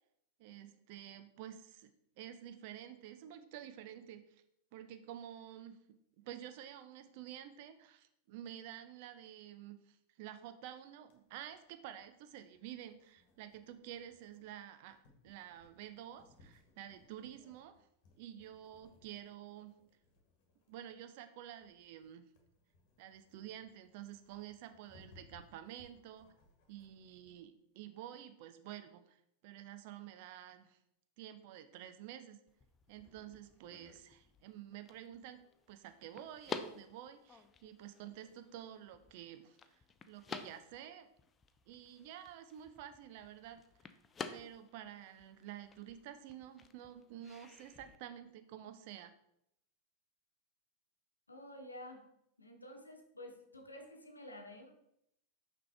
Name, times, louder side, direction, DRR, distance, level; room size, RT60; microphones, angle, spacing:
voice 1, 0.4-1.9 2.2-4.3 4.7-5.8 6.2-15.0 15.2-17.7 18.2-19.7 20.7-22.3 23.0-26.3 26.7-29.2 29.4-30.8 31.2-32.4 32.9-35.4 35.7-39.6 40.1-41.1 41.7-43.6 44.3-49.1, right 11 dB, 50° right, 10 dB, 0.5 m, -50 dB
sound 1, 11.1-27.4, left 2 dB, 45° left, 1.5 m, -67 dB
sound 2, 32.5-48.0, left 5 dB, 20° left, 0.5 m, -51 dB
voice 2, 51.3-52.0 52.4-54.7, left 1 dB, 80° left, 4 dB, 0.9 m, -51 dB
5.9 x 5.1 x 3.3 m, 0.77 s
figure-of-eight pair, 90°, 0 cm